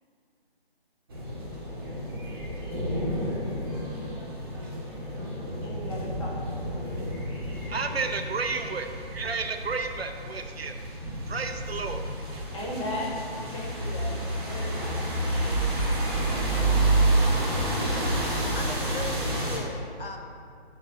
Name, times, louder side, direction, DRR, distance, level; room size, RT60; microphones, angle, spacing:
sound 1, 1.1-19.6, right 1 dB, 20° right, 1.3 m, -29 dB
voice 1, 5.6-6.4 6.6-7.1 12.5-13.2 13.5-15.1, left 1 dB, 30° left, -5 dB, 1.6 m, -36 dB
voice 2, 6.9-12.4, right 4 dB, 70° right, 6 dB, 0.8 m, -33 dB
voice 3, 18.5-20.2, left 3 dB, 60° left, 3 dB, 0.9 m, -38 dB
8.0 x 3.8 x 6.8 m, 2.3 s
figure-of-eight pair, 165°, 32 cm